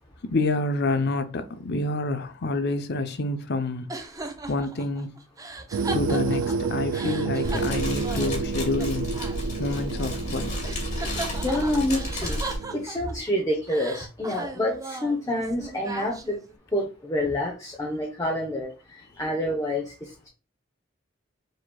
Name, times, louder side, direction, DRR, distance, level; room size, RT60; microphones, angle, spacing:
voice 1, 0.2-3.9 4.5-5.1 5.9-9.1 9.6-10.5, left 2 dB, 60° left, 0.7 m, -28 dB
sound 1, 3.9-10.4 10.6-13.3 13.7-16.5, right 2 dB, 20° right, 0.6 m, -38 dB
sound 2, 5.7-12.9, right 5 dB, 70° right, 0.3 m, -30 dB
Fire, 7.4-12.6, left 1 dB, 40° left, 2.7 m, -32 dB
voice 2, 11.3-12.4 12.7-16.4 16.7-20.3, left 1 dB, 15° left, 0.9 m, -28 dB
5.0 x 4.2 x 2.3 m
head